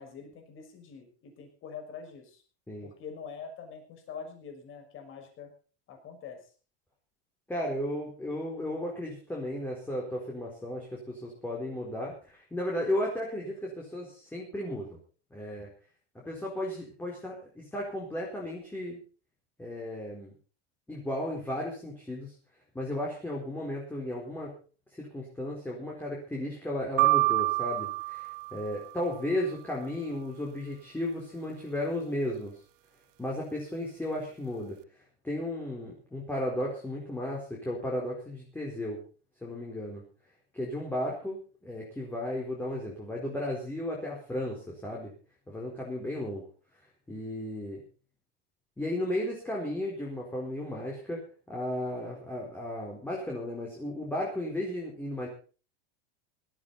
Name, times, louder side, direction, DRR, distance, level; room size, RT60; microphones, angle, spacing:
voice 1, 0.0-2.4 2.8-5.5 5.9-6.4, left 6 dB, 40° left, 4 dB, 6.1 m, -44 dB
voice 2, 7.5-15.0 15.3-15.7 16.1-19.0 19.6-20.3 20.9-22.3 22.7-24.5 24.9-32.5 33.2-34.8 35.2-39.0 39.4-40.0 40.5-45.1 45.5-46.4 47.1-47.8 48.8-51.2 51.5-55.3, left 1 dB, 5° left, -3 dB, 4.5 m, -34 dB
sound 1, 27.0-29.1, right 26 dB, 45° right, 0.7 m, -27 dB
18.0 x 14.5 x 4.2 m, 0.37 s
supercardioid pair, 145°, 33 cm